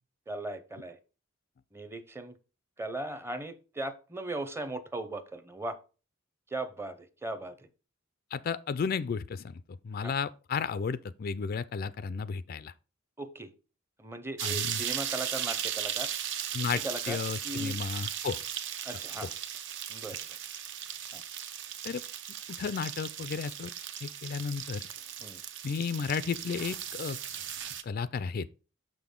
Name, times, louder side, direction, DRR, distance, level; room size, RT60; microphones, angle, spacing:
voice 1, 0.3-1.0 1.7-2.4 2.8-5.8 6.5-7.7 10.0-10.1 13.2-13.5 14.0-16.1 16.7-17.8 18.8-19.3 19.9-20.4 21.1-21.2 25.2-25.4, right 2 dB, 15° right, 0.7 m, -38 dB
voice 2, 8.3-12.7 14.4-14.8 16.5-16.8 17.1-18.4 21.8-22.0 22.6-23.7 24.0-24.8 25.6-27.2 27.8-28.5, left 5 dB, 50° left, 0.4 m, -33 dB
sound 1, 14.4-27.8, right 9 dB, 65° right, 0.7 m, -37 dB
6.6 x 5.9 x 3.6 m
head